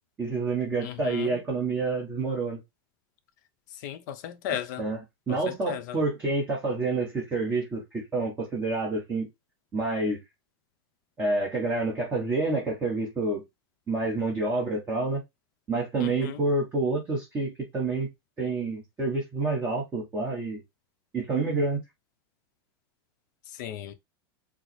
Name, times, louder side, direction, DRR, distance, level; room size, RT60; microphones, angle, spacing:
voice 1, 0.2-2.6 4.8-5.0 5.3-9.3 9.7-10.2 11.2-13.4 13.9-15.2 15.7-18.1 18.4-20.6 21.1-21.8, right 3 dB, 15° right, 0.9 m, -28 dB
voice 2, 0.8-1.4 3.8-4.8 5.3-5.4 5.7-6.0 16.0-16.4 23.6-23.9, left 10 dB, 45° left, 0.6 m, -35 dB
4.7 x 2.0 x 4.1 m
supercardioid pair, 170°, 13 cm